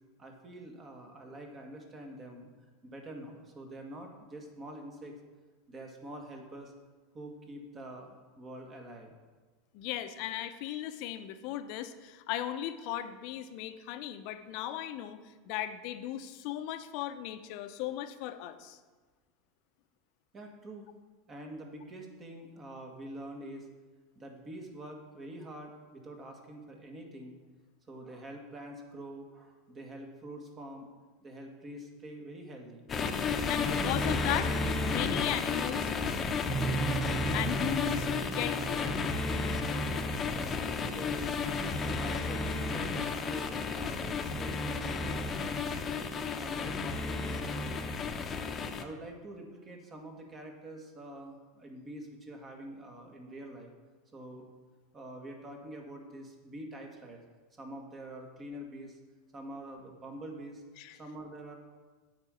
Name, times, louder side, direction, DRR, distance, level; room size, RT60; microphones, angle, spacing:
voice 1, 0.2-2.5 2.8-5.1 5.7-6.7 7.1-9.1 20.3-20.9 21.3-23.7 24.2-27.4 27.9-30.9 31.2-32.9 40.1-41.4 42.0-45.6 45.9-47.8 48.8-53.7 54.1-54.5 54.9-57.2 57.5-59.0 59.3-60.6 61.0-61.5, right 1 dB, 30° right, 2 dB, 1.9 m, -46 dB
voice 2, 9.7-18.8 33.3-34.5 34.8-35.9 37.3-38.9 60.8-61.0, left 12 dB, 60° left, 9 dB, 0.7 m, -37 dB
sound 1, 32.9-48.8, left 4 dB, 30° left, 0.9 m, -32 dB
sound 2, 36.5-44.2, right 6 dB, 15° left, 1.4 m, -41 dB
8.1 x 5.1 x 7.2 m, 1.3 s
hypercardioid pair, 90°, 0 cm